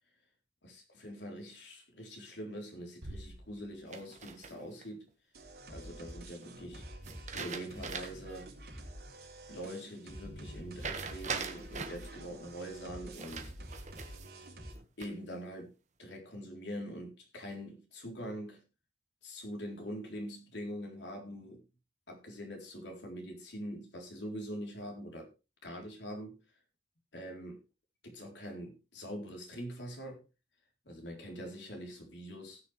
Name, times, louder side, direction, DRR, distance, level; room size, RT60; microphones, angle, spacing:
voice 1, 1.0-5.1 5.7-6.8 7.3-8.5 9.5-13.5 15.0-15.7 16.0-18.6 19.2-21.6 22.1-25.3 25.6-26.4 27.1-27.6 28.0-30.2 30.9-32.6, equal, 80° left, 3.8 m, -43 dB
Bass drum, 3.0-4.4, right 1 dB, 80° right, 2.4 m, -48 dB
sound 1, 3.9-4.8 7.0-8.3 8.7-8.8 10.8-12.1 13.1-14.3 14.7-15.3, right 5 dB, 45° right, 1.7 m, -41 dB
sound 2, 5.3-14.7, right 1 dB, 60° right, 3.6 m, -48 dB
18.5 x 6.8 x 3.4 m
head